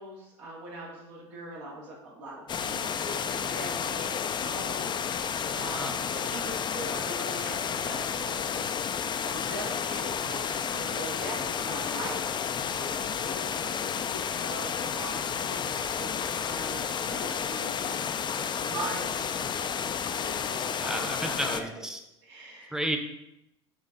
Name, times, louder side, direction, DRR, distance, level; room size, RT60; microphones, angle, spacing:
voice 1, 0.0-5.2 5.5-8.7 9.3-18.0 18.5-19.7 20.2-21.8 22.3-22.8, right 1 dB, 75° right, -4 dB, 2.3 m, -42 dB
sound 1, 2.5-21.6, left 7 dB, 30° left, 0.5 m, -31 dB
voice 2, 5.7-6.0 20.8-22.0 22.7-23.0, right 1 dB, 5° right, 5 dB, 1.0 m, -32 dB
7.2 x 3.9 x 4.0 m, 0.87 s
hypercardioid pair, 70°, 15 cm